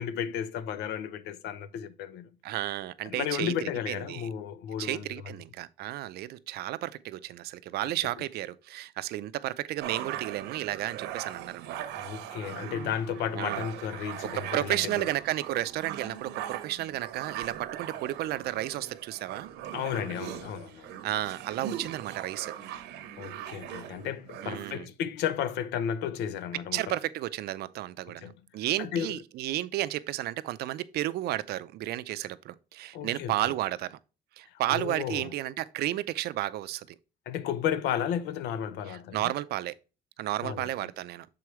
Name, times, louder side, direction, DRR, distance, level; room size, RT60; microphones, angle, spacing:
voice 1, 0.0-2.3 3.1-5.1 12.0-15.1 19.7-20.9 23.2-27.0 28.1-28.3 28.8-29.2 32.9-33.5 34.7-35.3 37.3-39.3 40.4-40.9, left 9 dB, 85° left, 0.7 m, -33 dB
voice 2, 2.4-4.3 4.8-11.9 13.3-13.7 14.2-19.5 21.0-22.5 24.4-24.9 26.7-34.0 34.4-37.0 38.9-39.7 40.2-41.3, right 15 dB, 70° right, 0.5 m, -32 dB
sound 1, 9.8-24.8, right 10 dB, 85° right, 0.9 m, -40 dB
6.8 x 4.8 x 3.1 m
cardioid pair, 110°, 17 cm